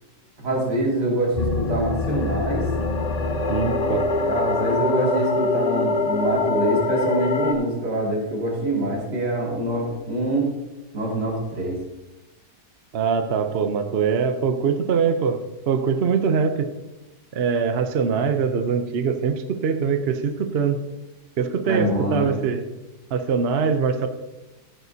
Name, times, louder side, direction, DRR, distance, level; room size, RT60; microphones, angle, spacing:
voice 1, 0.4-2.7 4.1-10.5 10.9-11.8 21.6-22.4, right 1 dB, 75° right, -3 dB, 3.2 m, -25 dB
sound 1, 1.4-7.5, left 3 dB, 70° left, 0.3 m, -24 dB
voice 2, 3.5-4.1 12.9-16.7 17.3-20.8 21.4-22.7 23.1-24.1, right 6 dB, 55° right, 7 dB, 0.7 m, -23 dB
14.0 x 9.2 x 2.8 m, 1.0 s
omnidirectional pair, 1.8 m